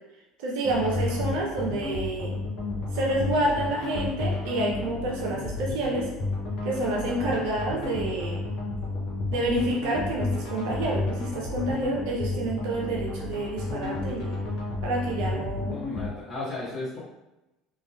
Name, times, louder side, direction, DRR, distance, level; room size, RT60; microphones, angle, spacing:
voice 1, 0.4-2.3 2.9-6.1 6.6-8.4 9.3-14.4 14.8-15.8, right 2 dB, 65° right, -2 dB, 0.4 m, -28 dB
sound 1, 0.6-16.1, left 3 dB, 50° left, 0.7 m, -32 dB
voice 2, 15.6-17.0, left 2 dB, 5° left, -12 dB, 1.0 m, -34 dB
2.6 x 2.1 x 2.3 m, 0.98 s
figure-of-eight pair, 65°, 0 cm